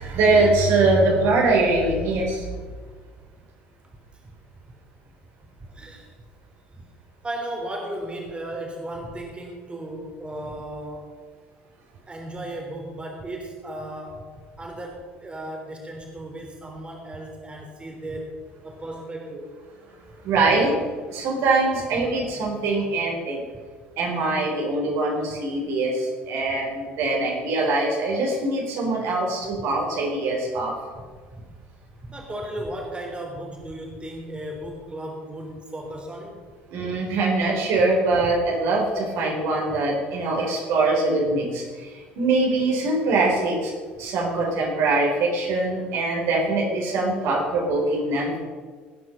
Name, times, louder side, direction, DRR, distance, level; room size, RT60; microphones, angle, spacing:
voice 1, 0.0-2.5 20.2-20.7 21.1-23.4 24.0-30.7 36.7-43.7 44.0-48.4, right 2 dB, 55° right, -1 dB, 4.1 m, -23 dB
voice 2, 5.6-6.1 6.7-6.8 7.2-11.2 12.1-14.3 14.6-18.3 18.6-19.6 30.9-31.0 31.3-31.5 32.0-36.4 39.7-39.8 47.3-47.4, right 1 dB, 20° right, 1 dB, 3.3 m, -35 dB
18.5 x 9.8 x 5.4 m, 1.5 s
figure-of-eight pair, 60°, 6 cm